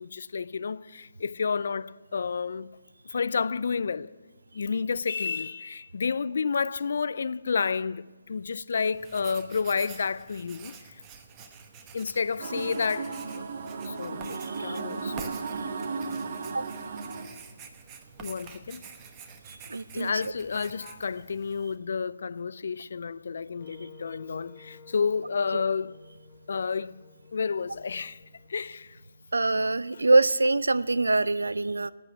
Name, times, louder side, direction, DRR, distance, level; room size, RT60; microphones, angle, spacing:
voice 1, 0.0-2.7 3.1-4.1 4.5-11.0 11.9-13.5 13.8-15.6 18.2-18.8 19.9-26.0 26.5-27.0 27.3-28.2 28.5-29.0 29.9-30.0, left 5 dB, 60° left, 0.4 m, -30 dB
Writing, 8.9-21.8, right 6 dB, 25° right, 1.0 m, -48 dB
sound 1, 12.4-17.2, right 4 dB, 50° right, 1.2 m, -35 dB
voice 2, 14.4-14.8 16.5-16.7 19.7-20.1 25.5-25.6 29.3-31.9, right 2 dB, 85° right, 0.4 m, -24 dB
Wind instrument woodwind instrument, 23.6-29.6, left 4 dB, 25° left, 1.3 m, -53 dB
12.0 x 8.9 x 9.0 m
figure-of-eight pair, 150°, 0 cm